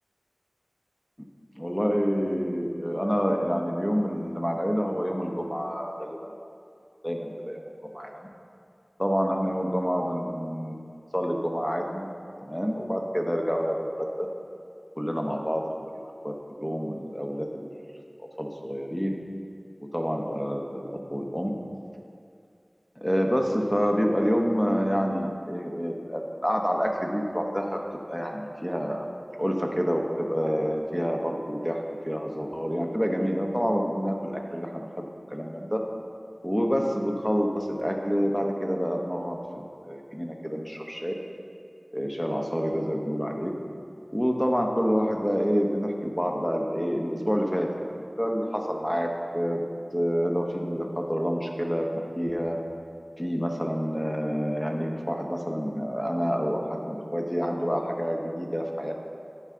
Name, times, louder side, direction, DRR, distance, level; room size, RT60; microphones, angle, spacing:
voice 1, 1.6-6.3 7.0-7.6 7.9-8.2 9.0-10.8 11.1-12.1 12.4-14.0 15.0-15.6 16.2-17.6 18.2-19.2 19.8-21.5 23.0-27.8 28.1-29.0 29.4-31.8 32.0-35.8 36.4-41.1 41.9-43.5 44.1-49.1 49.3-49.7 49.9-51.9 52.1-52.6 53.2-58.9, equal, 10° left, 1 dB, 0.9 m, -28 dB
9.6 x 5.7 x 3.7 m, 2.4 s
wide cardioid pair, 40°, 0 cm